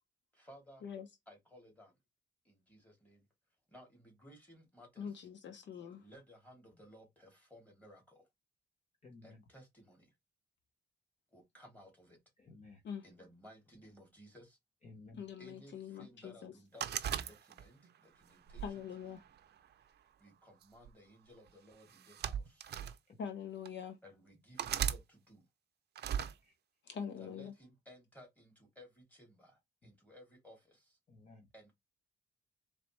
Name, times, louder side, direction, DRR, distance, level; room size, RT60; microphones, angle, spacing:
voice 1, 0.3-0.8 1.3-1.9 2.4-3.3 3.7-5.3 6.0-8.3 9.2-10.1 11.3-12.2 13.0-14.6 15.4-18.9 20.2-23.0 24.0-25.5 27.2-31.0 31.5-31.7, equal, 10° left, 2.6 m, -59 dB
voice 2, 5.0-6.0 12.8-13.0 15.2-16.5 18.6-19.2 23.2-24.0 26.8-27.5, left 7 dB, 70° left, 0.8 m, -44 dB
voice 3, 9.0-9.4 12.4-12.8 14.8-15.2 23.1-23.2 26.1-26.5 29.8-29.9 31.1-31.5, left 3 dB, 40° left, 0.9 m, -56 dB
sound 1, 16.8-17.9 18.5-19.7 20.6-20.9 21.9-23.0 23.7-23.8 24.6-25.0 26.0-26.3, right 9 dB, 60° right, 0.5 m, -37 dB
4.1 x 3.3 x 3.1 m
cardioid pair, 115°, 19 cm